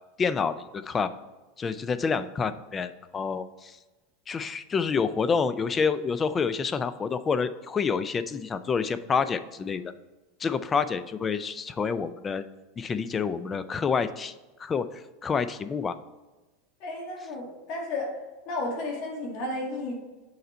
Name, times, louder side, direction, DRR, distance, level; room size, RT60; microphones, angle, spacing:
voice 1, 0.2-1.1 1.6-3.8 4.3-9.8 10.4-12.4 12.8-14.3 14.6-16.0, left 5 dB, 20° left, 13 dB, 0.3 m, -28 dB
voice 2, 16.8-18.1 18.5-19.9, left 2 dB, 50° left, -1 dB, 1.8 m, -32 dB
6.8 x 3.9 x 4.3 m, 1.2 s
supercardioid pair, 150°, 0 cm